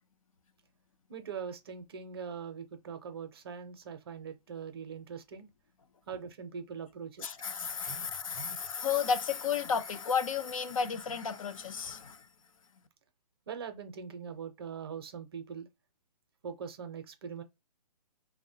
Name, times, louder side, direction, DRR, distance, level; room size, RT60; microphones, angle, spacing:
voice 1, 1.1-5.5 6.1-7.3 7.9-8.1 8.3-8.6 13.5-15.7 16.4-17.4, right 6 dB, 35° right, 0.5 m, -42 dB
voice 2, 7.2-12.3, left 6 dB, 55° left, 0.4 m, -33 dB
3.0 x 2.1 x 2.6 m
hypercardioid pair, 165°, 21 cm